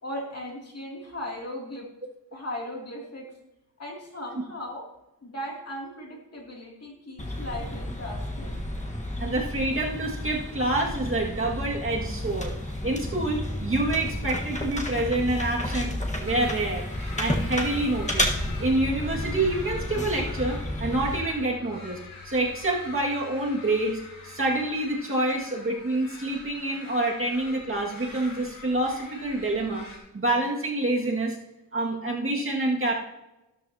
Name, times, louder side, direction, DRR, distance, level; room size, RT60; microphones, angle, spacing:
voice 1, 0.0-1.9 2.3-3.3 3.8-4.9 5.2-8.6, left 1 dB, 40° left, -2 dB, 2.7 m, -37 dB
sound 1, 7.2-21.2, left 1 dB, 20° left, 1.4 m, -31 dB
voice 2, 9.2-12.5 12.8-16.9 17.2-18.3 18.6-22.0 22.2-29.9 30.1-31.4 31.7-32.9, right 2 dB, 35° right, -2 dB, 2.0 m, -27 dB
sound 2, 16.2-30.0, left 2 dB, 60° left, 3.8 m, -45 dB
sound 3, 18.4-24.7, left 6 dB, 75° left, 5.1 m, -45 dB
14.0 x 13.0 x 2.8 m, 0.94 s
wide cardioid pair, 170°, 39 cm